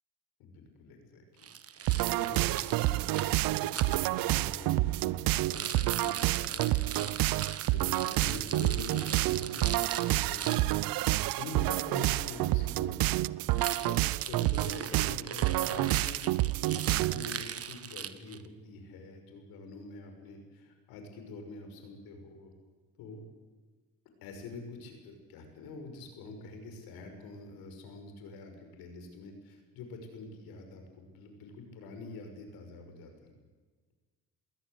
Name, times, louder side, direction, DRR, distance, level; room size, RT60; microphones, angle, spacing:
voice 1, 0.4-1.5 2.0-7.4 7.7-14.0 14.2-22.5 23.0-23.3 24.2-33.3, left 3 dB, 85° left, 5 dB, 6.1 m, -46 dB
Rattle, 1.4-4.0 5.4-10.8 13.5-18.5, right 8 dB, 40° right, 1.4 m, -40 dB
sound 1, 1.9-17.4, right 18 dB, 70° right, 0.7 m, -29 dB
21.5 x 17.5 x 8.3 m, 1.4 s
cardioid pair, 100°, 35 cm